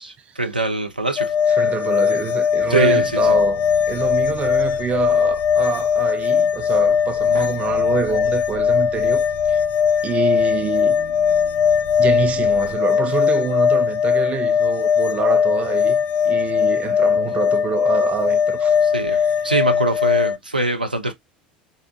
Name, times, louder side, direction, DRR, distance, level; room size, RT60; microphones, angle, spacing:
voice 1, 0.0-1.3 2.7-3.4 7.3-7.5 18.8-21.1, right 2 dB, 85° right, 0.5 m, -23 dB
sound 1, 1.2-20.4, left 7 dB, 40° left, 0.3 m, -19 dB
voice 2, 1.6-9.6 10.0-11.0 12.0-18.8 19.1-19.5, right 7 dB, 25° right, 0.5 m, -26 dB
sound 2, 2.5-12.8, right 6 dB, 65° right, 0.8 m, -41 dB
3.8 x 2.0 x 2.6 m
figure-of-eight pair, 70°, 5 cm